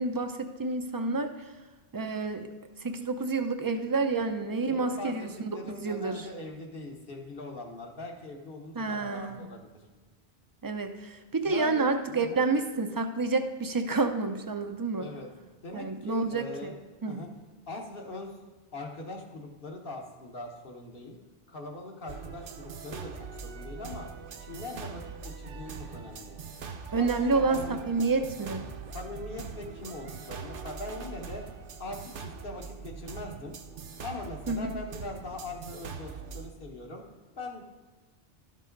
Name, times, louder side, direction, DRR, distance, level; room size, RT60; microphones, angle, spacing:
voice 1, 0.0-1.3 1.9-2.5 2.8-6.3 8.8-9.4 10.6-15.1 15.7-16.7 17.0-17.2 26.9-27.6 27.9-28.6 34.5-34.6, right 3 dB, 30° right, 7 dB, 0.4 m, -29 dB
voice 2, 4.7-9.8 11.4-12.4 15.0-15.3 15.6-16.7 17.1-17.3 17.7-18.4 18.7-21.2 21.5-24.1 24.4-26.4 27.0-27.8 28.4-28.6 28.9-31.4 31.8-33.6 34.0-37.0 37.4-37.6, left 2 dB, 60° left, 1 dB, 1.3 m, -41 dB
sound 1, 22.1-36.5, right 5 dB, 65° right, 0.8 m, -42 dB
12.0 x 5.5 x 3.9 m, 1.2 s
omnidirectional pair, 1.1 m